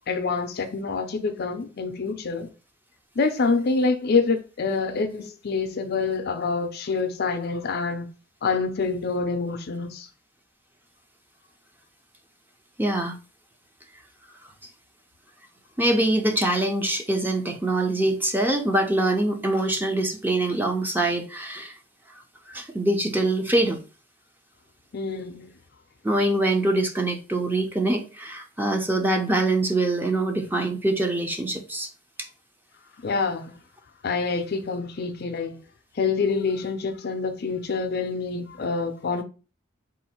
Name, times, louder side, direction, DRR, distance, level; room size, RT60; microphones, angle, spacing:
voice 1, 0.1-2.5 3.2-8.1 8.4-10.1 24.9-25.5 33.0-33.6 34.0-35.6 36.0-39.2, left 4 dB, 55° left, 0.5 m, -26 dB
voice 2, 12.8-13.2 15.8-21.7 22.5-23.8 26.0-31.9, right 1 dB, 10° right, 0.6 m, -24 dB
3.8 x 2.5 x 4.2 m
head